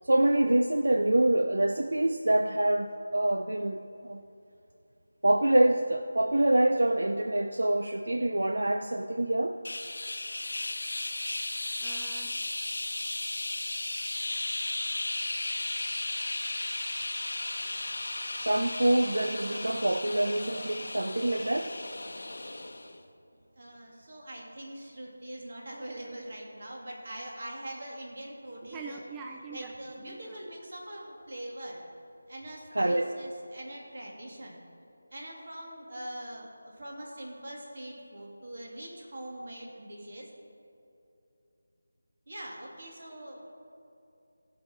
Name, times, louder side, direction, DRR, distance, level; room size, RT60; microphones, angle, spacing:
voice 1, 0.1-4.2 5.2-9.6 18.4-21.7 32.8-33.1, right 1 dB, 80° right, 7 dB, 0.5 m, -26 dB
sound 1, 9.6-23.0, left 2 dB, 70° left, 0.9 m, -35 dB
voice 2, 11.8-12.4 28.7-30.4, right 4 dB, 10° right, 1 dB, 0.4 m, -44 dB
voice 3, 23.3-29.0 29.5-31.8 32.3-34.6 35.1-40.3 42.3-43.4, right 1 dB, 55° right, -1 dB, 2.4 m, -43 dB
16.5 x 5.6 x 5.0 m, 2.6 s
figure-of-eight pair, 165°, 0 cm